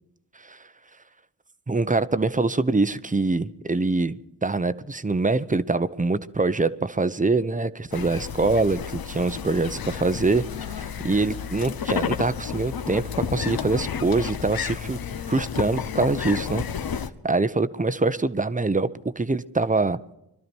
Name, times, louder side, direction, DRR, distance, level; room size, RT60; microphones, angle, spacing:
voice 1, 1.7-15.0 15.3-16.6 17.2-18.9 19.2-20.0, right 3 dB, 20° right, 13 dB, 0.8 m, -24 dB
sound 1, 7.9-17.1, left 7 dB, 60° left, 1.0 m, -31 dB
22.5 x 12.5 x 4.5 m, 0.84 s
cardioid pair, 55°, 40 cm